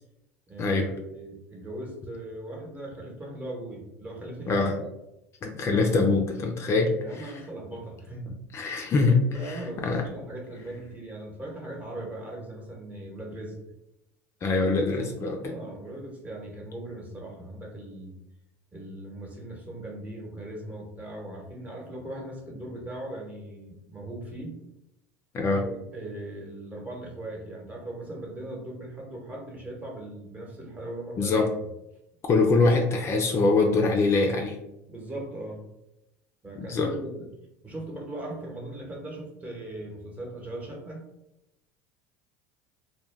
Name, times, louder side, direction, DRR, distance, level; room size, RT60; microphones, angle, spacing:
voice 1, 0.5-4.9 7.0-8.3 9.3-13.6 14.8-18.1 18.7-24.6 25.6-31.4 34.9-35.6 36.4-37.3 37.6-41.1, right 1 dB, 20° right, -1 dB, 1.0 m, -39 dB
voice 2, 5.4-7.3 8.5-10.0 14.4-15.5 25.3-25.6 31.2-31.5 32.3-34.6 36.6-36.9, left 3 dB, 35° left, 2 dB, 0.4 m, -24 dB
2.2 x 2.2 x 3.2 m, 0.87 s
supercardioid pair, 90°, 8 cm